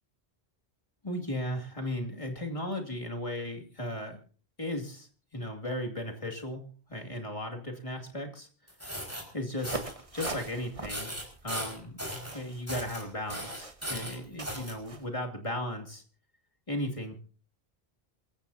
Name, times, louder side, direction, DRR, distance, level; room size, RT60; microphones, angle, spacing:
voice 1, 1.0-4.2 4.6-8.7 9.3-9.8 10.1-11.1 11.4-12.0 12.3-16.0 16.7-17.2, left 1 dB, 30° left, 2 dB, 2.6 m, -36 dB
sound 1, 8.7-9.2 9.6-9.9 10.2-10.5 10.9-12.3 12.7-13.0 13.3-14.7, equal, 15° right, 5.1 m, -37 dB
sound 2, 9.6-15.1, right 2 dB, 30° right, 1.4 m, -43 dB
27.5 x 15.0 x 2.8 m, 0.40 s
omnidirectional pair, 1.1 m